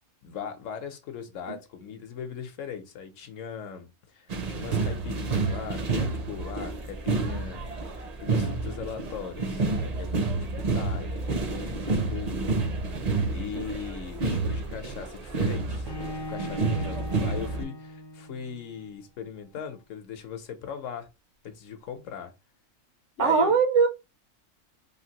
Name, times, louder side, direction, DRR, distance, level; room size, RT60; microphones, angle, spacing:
voice 1, 0.2-7.7 7.9-12.6 13.3-15.9 16.3-21.1 21.4-22.3 23.2-23.5, left 7 dB, 70° left, 1.0 m, -39 dB
sound 1, 4.3-17.6, right 3 dB, 50° right, 0.4 m, -29 dB
Bowed string instrument, 15.8-18.8, left 1 dB, 35° left, 0.4 m, -39 dB
voice 2, 23.2-23.9, right 6 dB, 70° right, 0.8 m, -21 dB
3.3 x 2.5 x 2.8 m
omnidirectional pair, 1.4 m